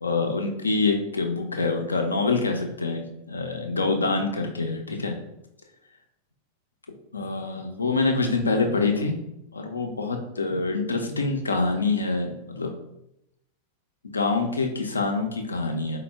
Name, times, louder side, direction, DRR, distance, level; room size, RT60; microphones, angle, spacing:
voice 1, 0.0-5.2 7.1-9.1 9.5-12.7 14.0-16.0, left 3 dB, 75° left, 4 dB, 0.5 m, -26 dB
4.1 x 2.1 x 3.3 m, 0.84 s
figure-of-eight pair, 90°, 0 cm